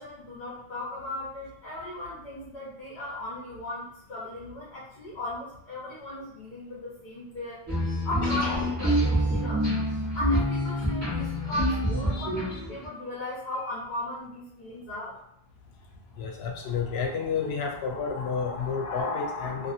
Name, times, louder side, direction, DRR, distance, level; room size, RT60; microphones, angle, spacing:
voice 1, 0.0-7.6 8.0-9.6 10.1-15.2, left 1 dB, 50° left, -10 dB, 1.0 m, -37 dB
sound 1, 7.7-12.8, equal, 15° right, 1.1 m, -26 dB
voice 2, 16.2-19.7, left 5 dB, 90° left, 2 dB, 0.8 m, -30 dB
2.6 x 2.6 x 2.6 m, 0.73 s
omnidirectional pair, 1.0 m